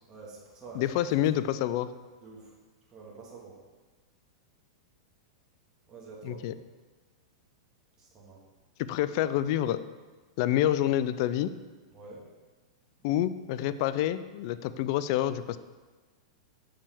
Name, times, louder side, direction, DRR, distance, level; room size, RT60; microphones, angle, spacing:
voice 1, 0.1-0.8 2.2-2.5 2.9-3.6 5.9-6.4 8.0-8.4 11.9-12.3, right 4 dB, 25° right, -4 dB, 1.6 m, -47 dB
voice 2, 0.7-1.9 6.2-6.5 8.8-9.8 10.4-11.5 13.0-15.6, left 12 dB, 55° left, 14 dB, 0.3 m, -27 dB
6.8 x 5.4 x 3.5 m, 1.3 s
hypercardioid pair, 120°, 3 cm